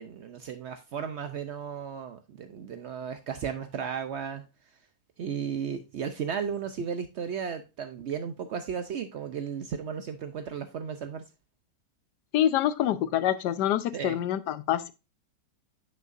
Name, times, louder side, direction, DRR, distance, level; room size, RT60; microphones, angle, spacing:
voice 1, 0.0-4.5 5.2-11.2 13.9-14.2, right 7 dB, 90° right, 0.6 m, -34 dB
voice 2, 12.3-14.9, left 11 dB, 75° left, 1.2 m, -26 dB
9.3 x 5.6 x 2.5 m
omnidirectional pair, 1.9 m